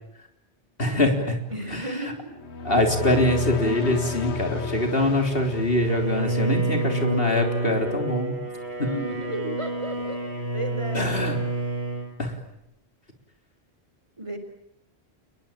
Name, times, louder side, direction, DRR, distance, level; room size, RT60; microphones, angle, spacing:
voice 1, 0.8-1.4 1.7-2.1 2.6-8.4 8.8-8.9 10.9-11.4 12.2-12.4, left 1 dB, 60° left, 4 dB, 4.1 m, -24 dB
voice 2, 1.5-2.3 8.8-10.2 10.5-11.2 14.2-14.4, equal, 30° right, 7 dB, 4.2 m, -33 dB
sound 1, 2.3-6.7, left 5 dB, 90° left, 1.6 m, -31 dB
Bowed string instrument, 5.9-12.1, right 2 dB, 60° right, 6.5 m, -28 dB
29.5 x 21.5 x 8.8 m, 0.79 s
omnidirectional pair, 1.1 m